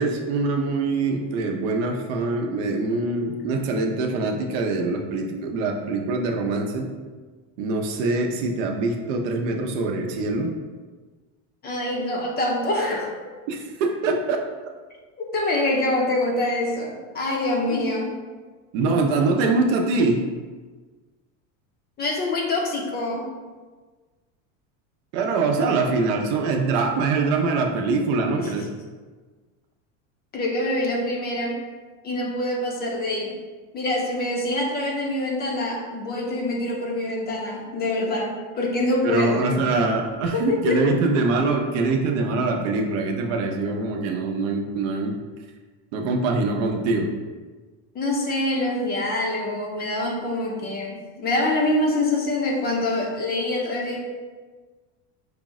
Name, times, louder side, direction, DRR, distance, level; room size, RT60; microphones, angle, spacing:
voice 1, 0.0-6.9 7.6-10.5 13.5-14.4 18.7-20.2 25.1-28.7 39.0-45.2 45.9-47.1, right 3 dB, 70° right, 3 dB, 0.7 m, -23 dB
voice 2, 11.6-13.1 15.2-18.1 22.0-23.3 28.4-28.5 30.3-31.6 32.0-33.3 33.7-39.6 40.3-40.8 47.9-54.0, left 1 dB, 25° left, -1 dB, 0.5 m, -25 dB
5.0 x 2.0 x 3.6 m, 1.4 s
supercardioid pair, 135°, 40 cm